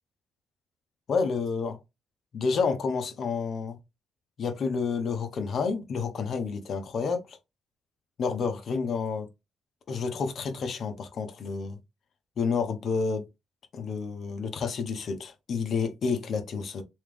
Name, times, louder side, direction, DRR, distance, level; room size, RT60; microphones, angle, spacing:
voice 1, 1.1-1.8 2.3-3.8 4.4-7.4 8.2-9.3 9.9-11.8 12.4-13.3 13.7-16.8, left 5 dB, 55° left, 0.9 m, -29 dB
3.4 x 3.2 x 3.3 m
cardioid pair, 90°, 0 cm